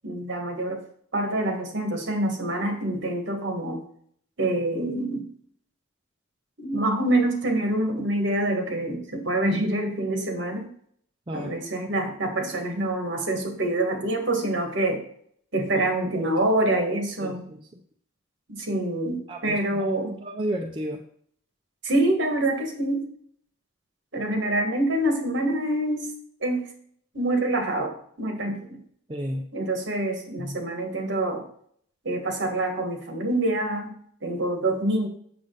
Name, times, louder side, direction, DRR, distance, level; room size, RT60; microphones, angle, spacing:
voice 1, 0.0-0.8 1.1-3.8 4.4-5.3 6.6-10.7 11.3-15.0 15.5-17.5 18.5-20.2 21.8-23.1 24.1-26.1 26.4-26.7 27.1-28.8 29.5-31.4 32.0-33.9 34.2-35.1, right 1 dB, 55° right, 4 dB, 1.7 m, -26 dB
voice 2, 17.2-17.6 19.3-21.0 29.1-29.5 30.4-30.6, equal, 25° right, 1 dB, 0.6 m, -33 dB
7.8 x 6.5 x 3.9 m, 0.62 s
head